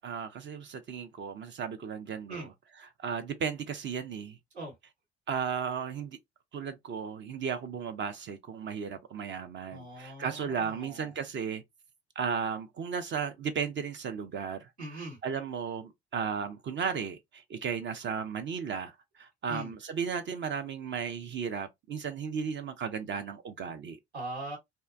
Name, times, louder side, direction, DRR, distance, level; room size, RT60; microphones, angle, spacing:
voice 1, 0.0-2.5 3.0-4.4 5.3-6.2 6.5-11.6 12.2-14.7 15.2-24.0, right 6 dB, 35° right, 0.5 m, -35 dB
voice 2, 9.7-11.1 14.8-15.2 19.5-19.7 24.1-24.6, right 2 dB, 85° right, 1.2 m, -41 dB
2.5 x 2.1 x 2.4 m
figure-of-eight pair, 55°, 32 cm